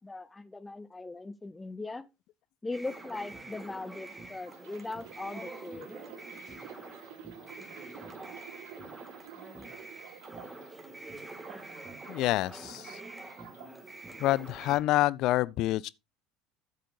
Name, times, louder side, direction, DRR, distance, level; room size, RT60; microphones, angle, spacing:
voice 1, 0.0-2.1 2.6-5.9, left 3 dB, 15° left, 0.7 m, -39 dB
sound 1, 2.7-14.8, right 2 dB, 15° right, 2.1 m, -46 dB
sound 2, 4.3-10.8 11.2-13.7 14.4-14.6, right 11 dB, 60° right, 1.0 m, -51 dB
voice 2, 12.1-13.0 14.2-15.9, left 16 dB, 50° left, 0.4 m, -27 dB
13.5 x 7.6 x 2.6 m
figure-of-eight pair, 65°, 0 cm